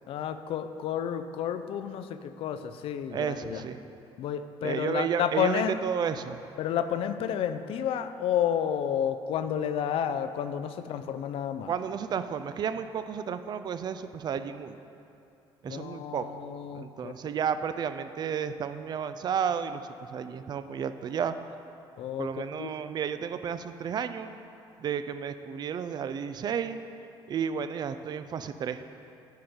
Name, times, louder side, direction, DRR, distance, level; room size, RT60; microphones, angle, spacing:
voice 1, 0.1-3.6 4.2-5.8 6.6-11.7 15.7-17.1 22.0-22.3 22.6-22.7, left 9 dB, 65° left, 10 dB, 0.4 m, -31 dB
voice 2, 3.1-3.8 4.6-6.4 11.7-14.8 15.6-16.3 16.7-19.8 20.1-21.3 22.2-24.3 24.8-26.8 27.3-28.8, right 7 dB, 45° right, 11 dB, 0.3 m, -32 dB
9.3 x 4.5 x 5.0 m, 2.8 s
cardioid pair, 105°, 10 cm